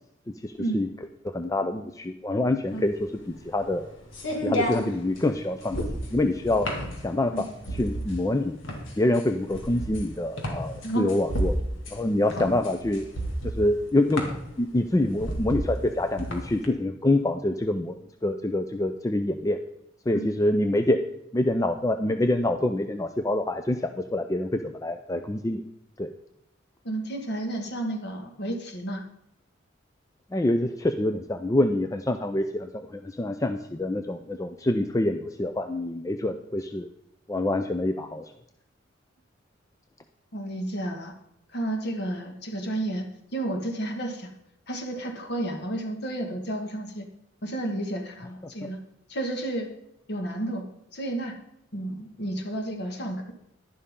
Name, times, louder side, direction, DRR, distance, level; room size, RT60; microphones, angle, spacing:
voice 1, 0.4-0.9 1.2-3.9 4.4-5.8 6.1-6.7 7.0-7.5 7.8-8.6 9.0-11.6 11.9-13.0 13.4-14.3 14.6-18.0 18.2-19.6 20.1-21.0 21.3-25.6 26.0-26.1 30.3-36.9 37.3-38.3, left 1 dB, 15° left, 7 dB, 0.4 m, -26 dB
sound 1, 2.8-16.7, equal, 75° left, 2.1 m, -32 dB
voice 2, 26.8-29.0 36.2-36.3 40.3-41.1 41.5-44.3 44.7-47.0 47.4-48.8 49.1-49.7 50.1-50.7 50.9-51.4 51.7-53.3, right 1 dB, 55° left, 4 dB, 1.7 m, -31 dB
11.0 x 11.0 x 3.7 m, 0.79 s
head